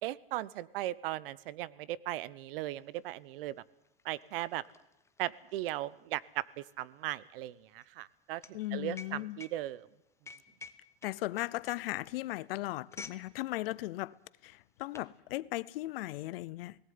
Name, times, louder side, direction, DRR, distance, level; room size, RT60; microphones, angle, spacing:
voice 1, 0.0-3.5 4.0-4.6 5.2-6.4 6.8-9.9, right 15 dB, 65° right, 1.0 m, -37 dB
sound 1, 3.0-3.1 3.3-13.3 13.6-13.8 14.5-15.1, left 4 dB, 10° left, 0.9 m, -52 dB
voice 2, 8.5-9.4 11.0-14.2 14.4-16.8, left 17 dB, 70° left, 0.8 m, -37 dB
18.5 x 16.0 x 9.5 m
supercardioid pair, 140°, 30 cm